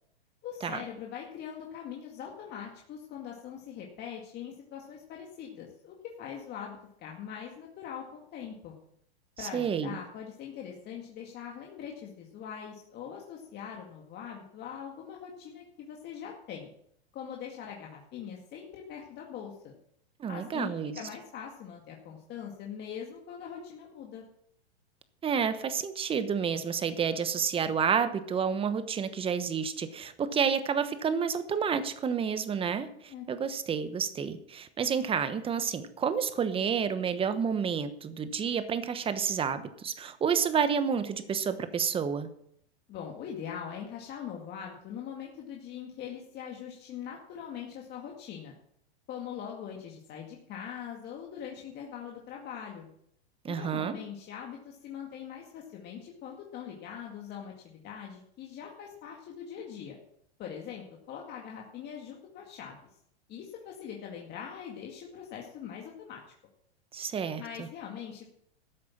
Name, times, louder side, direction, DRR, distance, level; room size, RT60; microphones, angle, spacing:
voice 1, 0.4-8.8 9.4-16.7 17.1-19.8 20.3-24.3 33.0-33.3 42.9-48.5 49.1-52.9 53.5-60.0 60.4-62.8 63.3-66.2 67.4-68.2, left 8 dB, 30° left, -1 dB, 2.1 m, -42 dB
voice 2, 9.4-10.0 20.2-21.0 25.2-42.3 53.4-54.0 66.9-67.7, right 7 dB, 15° right, 11 dB, 1.1 m, -30 dB
13.5 x 8.0 x 7.2 m, 0.71 s
hypercardioid pair, 125°, 32 cm